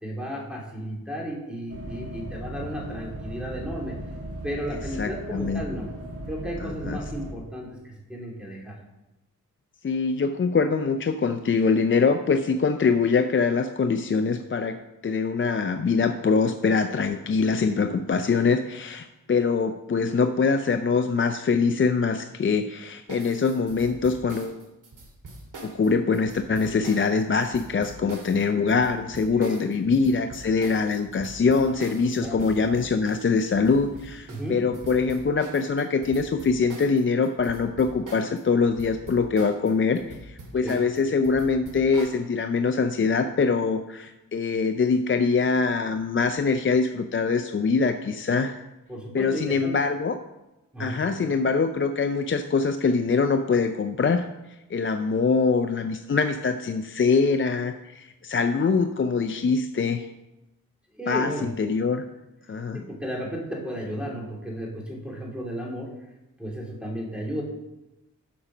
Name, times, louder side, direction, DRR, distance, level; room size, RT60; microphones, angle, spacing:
voice 1, 0.0-4.0 4.4-5.9 6.3-8.8 29.4-29.6 32.2-32.5 34.3-34.6 40.6-40.8 48.9-49.7 50.7-51.0 60.9-61.5 62.7-65.9 66.4-67.4, equal, 5° right, -2 dB, 2.6 m, -34 dB
sound 1, 1.7-7.3, right 1 dB, 45° right, 1.7 m, -37 dB
voice 2, 5.0-5.6 6.6-7.0 9.8-24.6 25.6-48.6 49.1-50.2 50.8-54.3 54.7-60.1 61.1-62.0 62.5-62.8, left 4 dB, 40° left, 7 dB, 0.5 m, -23 dB
sound 2, 23.1-38.4 38.7-42.2, right 2 dB, 75° right, 1.9 m, -43 dB
8.6 x 5.1 x 6.0 m, 0.98 s
wide cardioid pair, 80°, 32 cm